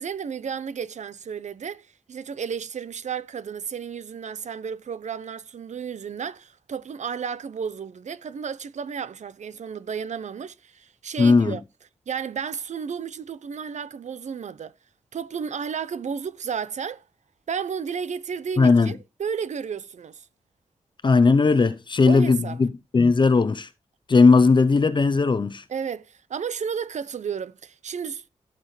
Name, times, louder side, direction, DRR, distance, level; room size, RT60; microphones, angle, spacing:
voice 1, 0.0-11.6 12.1-14.7 15.1-17.0 17.5-20.3 22.1-22.6 25.7-28.2, right 7 dB, 75° right, 0.7 m, -32 dB
voice 2, 11.2-11.6 18.6-18.9 21.0-22.7 22.9-23.7 24.1-25.6, left 4 dB, 40° left, 0.7 m, -18 dB
16.0 x 6.0 x 3.2 m
wide cardioid pair, 125°, 12 cm